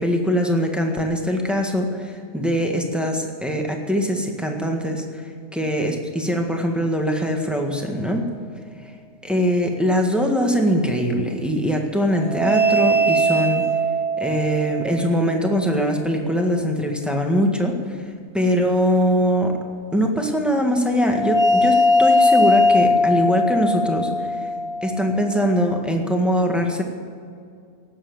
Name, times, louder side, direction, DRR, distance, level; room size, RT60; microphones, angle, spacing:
voice 1, 0.0-8.3 8.8-8.9 9.2-13.6 14.2-18.1 18.3-19.5 19.9-24.5 24.8-26.8, equal, ahead, 2 dB, 1.6 m, -22 dB
sound 1, 12.2-15.6 21.0-25.8, left 1 dB, 25° right, 1.9 m, -20 dB
18.5 x 8.1 x 7.8 m, 2.3 s
omnidirectional pair, 1.4 m